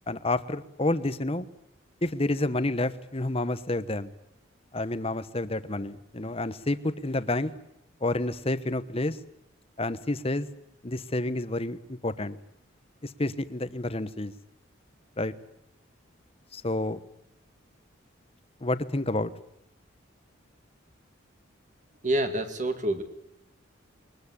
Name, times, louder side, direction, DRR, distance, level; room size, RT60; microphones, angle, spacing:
voice 1, 0.1-1.5 2.0-4.1 4.7-7.5 8.0-9.2 9.8-10.5 10.8-12.4 13.0-14.3 15.2-15.3 16.5-17.0 18.6-19.3, left 2 dB, 30° left, 13 dB, 1.1 m, -29 dB
voice 2, 22.0-23.0, right 1 dB, 40° right, 7 dB, 2.3 m, -27 dB
23.0 x 20.5 x 9.9 m, 0.77 s
head